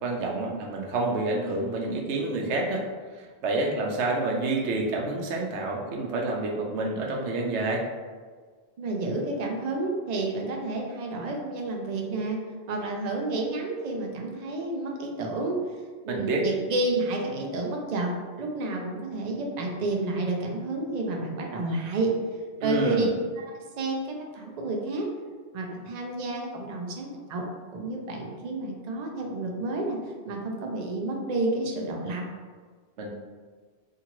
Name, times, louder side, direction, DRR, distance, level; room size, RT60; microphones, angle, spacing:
voice 1, 0.0-2.8 3.1-7.8 16.1-16.4 22.6-23.1 33.0-33.1, right 2 dB, 85° right, 0 dB, 0.9 m, -28 dB
voice 2, 8.8-12.4 12.7-15.6 16.1-18.1 18.4-22.1 22.6-23.1 23.4-25.1 25.5-27.4 27.7-30.0 30.2-32.2, right 2 dB, 55° right, 0 dB, 0.5 m, -30 dB
2.8 x 2.5 x 2.9 m, 1.5 s
omnidirectional pair, 1.1 m